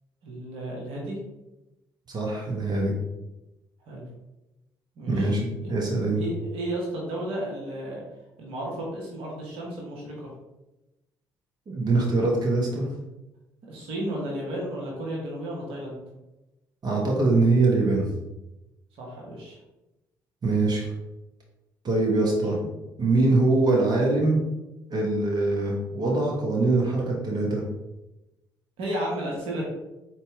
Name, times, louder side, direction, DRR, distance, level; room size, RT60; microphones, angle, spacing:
voice 1, 0.2-1.2 3.9-4.0 5.0-5.4 5.8-8.0 8.4-10.3 13.7-16.0 19.0-19.6 28.8-29.6, right 1 dB, 65° right, -3 dB, 1.1 m, -33 dB
voice 2, 2.1-2.9 5.1-6.2 11.7-12.9 16.8-18.1 20.4-20.9 21.8-22.6 23.0-24.4 24.9-27.6, right 2 dB, 40° right, -2 dB, 1.1 m, -23 dB
4.1 x 2.9 x 3.6 m, 0.97 s
figure-of-eight pair, 50°, 10 cm